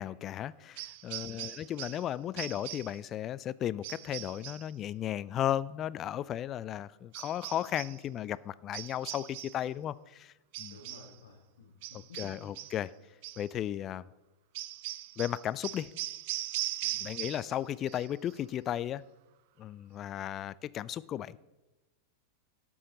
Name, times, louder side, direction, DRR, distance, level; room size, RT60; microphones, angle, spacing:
voice 1, 0.0-10.3 10.6-10.8 11.9-12.9 13.4-14.1 15.2-15.9 17.0-19.0 19.6-21.4, left 11 dB, 30° left, 19 dB, 0.3 m, -35 dB
sound 1, 0.8-2.1 2.4-3.0 3.8-4.7 7.1-8.0 8.7-9.7 10.5-11.2 11.8-12.8 13.2-13.5 14.5-17.6 17.9-18.4, right 16 dB, 50° right, 0.4 m, -40 dB
voice 2, 1.1-1.5 10.6-12.2 16.8-17.0, left 4 dB, 65° left, 1 dB, 1.6 m, -55 dB
12.5 x 8.6 x 4.0 m, 1.0 s
figure-of-eight pair, 90°, 0 cm